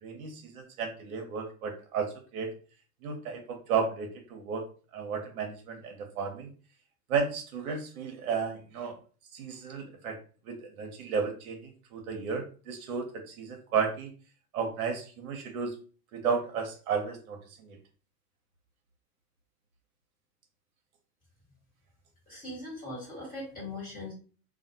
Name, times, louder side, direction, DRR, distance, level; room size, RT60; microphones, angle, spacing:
voice 1, 0.0-2.5 3.0-4.7 4.9-6.5 7.1-9.0 9.3-10.2 10.5-11.6 11.9-14.1 14.5-15.7 16.1-17.4, right 5 dB, 60° right, 3 dB, 0.8 m, -33 dB
voice 2, 22.3-24.1, left 2 dB, 20° left, -4 dB, 1.4 m, -40 dB
2.4 x 2.2 x 2.7 m, 0.38 s
hypercardioid pair, 115°, 47 cm